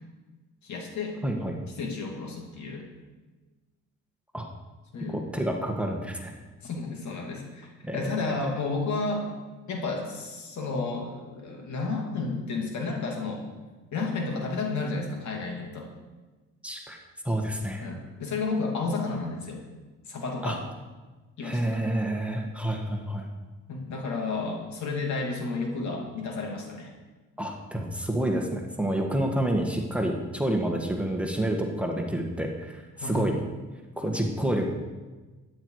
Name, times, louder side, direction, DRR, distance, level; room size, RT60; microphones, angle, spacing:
voice 1, 0.6-1.2 1.8-2.9 4.9-5.2 6.6-9.3 9.7-13.4 13.9-15.9 17.8-19.6 20.1-20.6 21.4-21.8 23.7-26.9 33.0-33.3, left 3 dB, 70° left, 1 dB, 2.7 m, -32 dB
voice 2, 1.2-1.5 4.3-4.5 5.1-6.3 7.8-8.0 8.2-8.4 16.6-17.0 17.3-17.9 20.4-20.6 21.4-23.3 27.4-33.4 34.0-34.7, right 1 dB, 5° right, 1 dB, 1.6 m, -28 dB
12.5 x 9.5 x 4.8 m, 1.2 s
cardioid pair, 90°, 30 cm